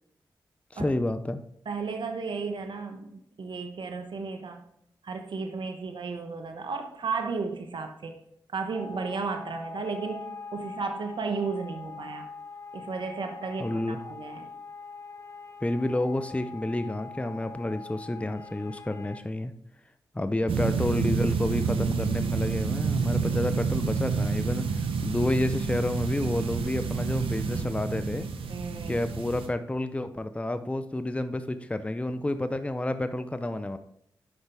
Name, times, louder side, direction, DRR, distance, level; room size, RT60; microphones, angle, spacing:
voice 1, 0.7-1.4 13.6-14.0 15.6-19.5 20.1-28.3 28.9-33.8, left 1 dB, 15° left, 10 dB, 0.6 m, -30 dB
voice 2, 1.7-4.6 5.0-8.2 8.5-12.3 12.7-14.5 20.2-20.3 23.4-23.5 28.5-29.0, right 4 dB, 65° right, 6 dB, 1.0 m, -34 dB
sound 1, 8.7-19.2, left 4 dB, 35° left, 1.0 m, -43 dB
sound 2, 20.5-29.5, right 5 dB, 85° right, 0.8 m, -28 dB
8.1 x 5.5 x 3.4 m, 0.73 s
supercardioid pair, 40°, 9 cm